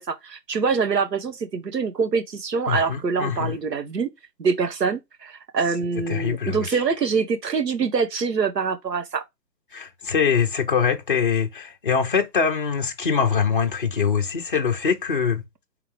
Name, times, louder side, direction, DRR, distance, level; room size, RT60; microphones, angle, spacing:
voice 1, 0.0-4.1 4.4-9.2, right 5 dB, 75° right, 1.0 m, -25 dB
voice 2, 2.7-3.6 6.1-6.8 9.7-15.4, left 6 dB, 35° left, 0.6 m, -23 dB
3.7 x 3.4 x 3.1 m
figure-of-eight pair, 150°, 50 cm